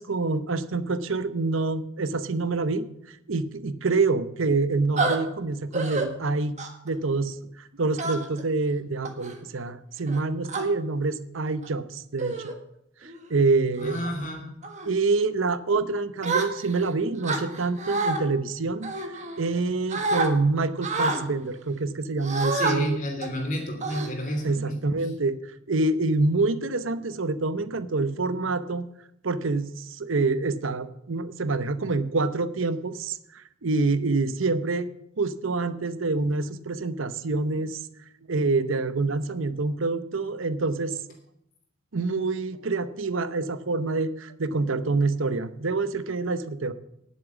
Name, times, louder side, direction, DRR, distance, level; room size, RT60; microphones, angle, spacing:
voice 1, 0.0-6.6 6.8-12.5 13.0-14.0 14.8-23.0 24.4-25.4 25.7-28.9 29.2-34.9 35.2-37.8 38.3-41.0 41.9-46.7, right 3 dB, 80° right, 13 dB, 0.8 m, -26 dB
sound 1, 5.0-5.2 5.7-6.1 6.6-6.9 8.0-8.4 9.0-9.3 10.1-10.6 11.5-11.7 12.2-12.6 13.0-13.3 13.8-14.1 14.6-14.9 16.2-16.9 17.2-18.2 18.8-19.6 19.9-20.3 20.8-21.2 22.2-22.8 23.2-23.4 23.8-24.5, right 3 dB, 35° right, 1.6 m, -28 dB
voice 2, 13.8-14.6 22.5-25.1, equal, 40° left, 3 dB, 3.0 m, -31 dB
11.0 x 8.5 x 7.1 m, 0.78 s
head